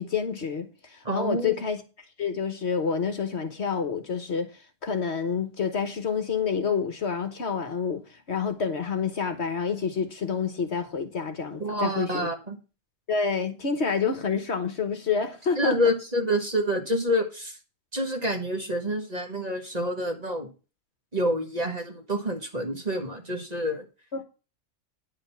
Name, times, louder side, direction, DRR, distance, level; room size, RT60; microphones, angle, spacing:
voice 1, 0.0-1.8 2.2-12.3 13.1-15.8 24.1-24.2, left 6 dB, 55° left, 1.3 m, -28 dB
voice 2, 1.0-1.6 11.6-12.6 15.6-17.6 17.9-20.5 21.1-23.9, equal, 30° right, 1.9 m, -27 dB
9.9 x 5.2 x 7.2 m
omnidirectional pair, 1.4 m